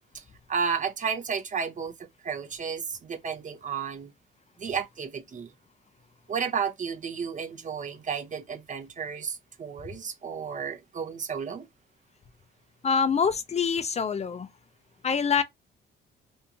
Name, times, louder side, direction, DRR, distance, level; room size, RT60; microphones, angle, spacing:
voice 1, 0.5-4.1 4.6-5.5 6.3-11.7, right 6 dB, 40° right, 0.6 m, -32 dB
voice 2, 12.8-14.5 15.0-15.4, left 6 dB, 35° left, 0.4 m, -25 dB
2.7 x 2.3 x 2.7 m
cardioid pair, 90°, 20 cm